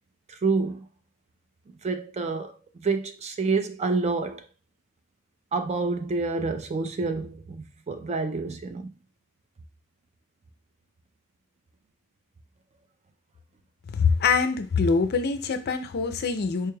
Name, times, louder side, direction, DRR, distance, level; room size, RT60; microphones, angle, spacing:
voice 1, 0.3-0.9 1.8-4.5 5.5-8.9, right 4 dB, 30° right, 0.4 m, -28 dB
voice 2, 13.9-16.7, left 5 dB, 45° left, 0.4 m, -24 dB
4.4 x 3.2 x 2.2 m
head